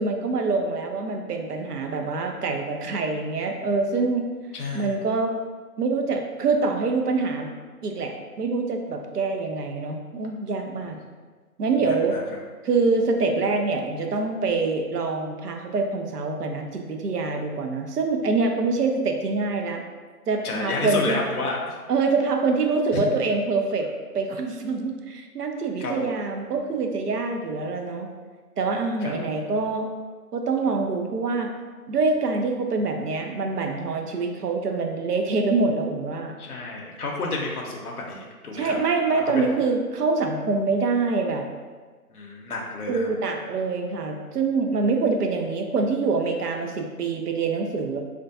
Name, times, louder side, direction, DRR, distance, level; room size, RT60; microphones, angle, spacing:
voice 1, 0.0-4.3 4.7-5.4 5.8-7.5 7.8-11.0 11.6-12.2 12.6-19.8 20.3-21.2 21.9-23.9 24.1-28.1 28.6-29.9 30.3-31.5 31.9-36.3 38.5-41.4 42.9-48.0, right 3 dB, 80° right, 3 dB, 0.5 m, -25 dB
voice 2, 4.5-5.0 11.8-12.2 20.4-21.8 22.9-23.0 25.8-26.1 29.0-29.1 36.4-38.8 39.1-39.6 42.1-43.1, left 3 dB, 70° left, -1 dB, 0.6 m, -31 dB
2.5 x 2.2 x 2.5 m, 1.4 s
figure-of-eight pair, 175°, 46 cm